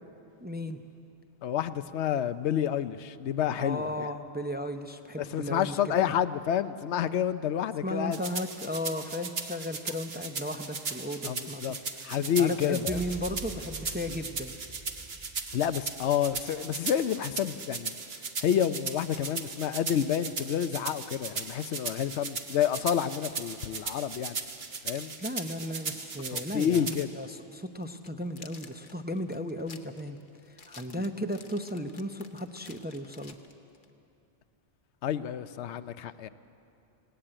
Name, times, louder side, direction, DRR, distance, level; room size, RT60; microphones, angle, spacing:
voice 1, 0.4-0.8 3.6-5.9 7.8-11.8 12.4-14.5 25.2-30.2 30.5-33.4, left 1 dB, 10° right, 6 dB, 0.6 m, -35 dB
voice 2, 1.4-4.1 5.2-8.2 11.2-11.7 12.0-13.0 15.5-17.9 18.4-24.4 24.8-25.1 26.3-27.1 30.9-31.0 35.0-36.3, left 9 dB, 85° left, 13 dB, 0.9 m, -29 dB
sound 1, 8.1-27.0, right 5 dB, 65° right, 1.4 m, -37 dB
sound 2, 12.8-17.1, right 2 dB, 40° right, 3.0 m, -46 dB
sound 3, 24.8-27.0 27.2-27.4 27.8-33.9, left 5 dB, 50° left, 1.1 m, -53 dB
18.5 x 17.5 x 8.9 m, 2.7 s
omnidirectional pair, 1.1 m